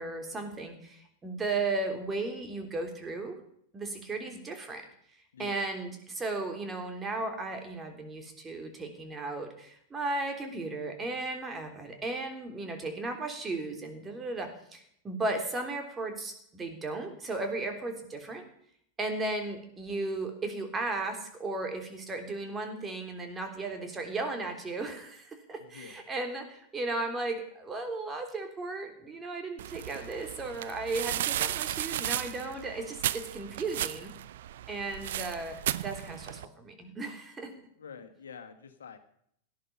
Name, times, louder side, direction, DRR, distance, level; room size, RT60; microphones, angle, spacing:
voice 1, 0.0-3.4 3.7-4.8 5.4-18.4 19.0-34.1 34.7-37.5, right 2 dB, 20° right, 4 dB, 3.6 m, -35 dB
voice 2, 5.3-5.6 25.6-26.0 37.8-39.0, left 6 dB, 75° left, 6 dB, 1.8 m, -47 dB
sound 1, 29.6-36.5, right 12 dB, 65° right, 0.6 m, -35 dB
17.0 x 11.5 x 5.6 m, 0.69 s
figure-of-eight pair, 95°, 0 cm